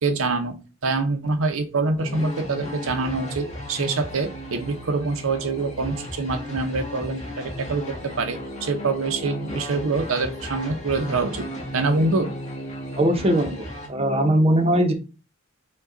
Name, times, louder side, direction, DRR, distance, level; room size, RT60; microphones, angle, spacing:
voice 1, 0.0-0.6 0.8-12.3, right 3 dB, 75° right, 8 dB, 0.6 m, -25 dB
sound 1, 2.0-13.9, left 1 dB, 35° left, 1.5 m, -35 dB
voice 2, 13.0-14.9, right 1 dB, 30° right, 6 dB, 0.7 m, -20 dB
4.8 x 2.3 x 3.8 m, 0.32 s
head